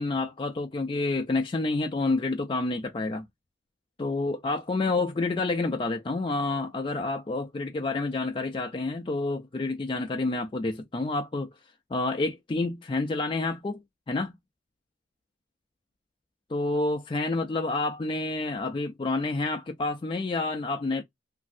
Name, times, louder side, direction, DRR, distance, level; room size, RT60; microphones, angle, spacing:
voice 1, 0.0-3.3 4.0-11.5 11.9-13.8 14.1-14.3 16.5-21.0, left 3 dB, 25° left, 0.3 m, -29 dB
3.0 x 2.6 x 2.4 m
head